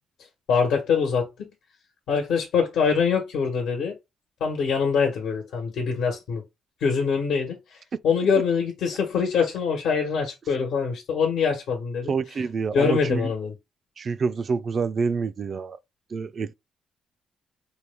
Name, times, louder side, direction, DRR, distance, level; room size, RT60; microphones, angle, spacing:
voice 1, 0.5-1.5 2.1-4.0 4.4-6.4 6.8-12.1 12.7-13.5, left 6 dB, 80° left, 1.1 m, -24 dB
voice 2, 12.1-13.3 14.0-15.8 16.1-16.5, right 5 dB, 45° right, 0.3 m, -27 dB
4.5 x 2.2 x 3.4 m
cardioid pair, 90°, 0 cm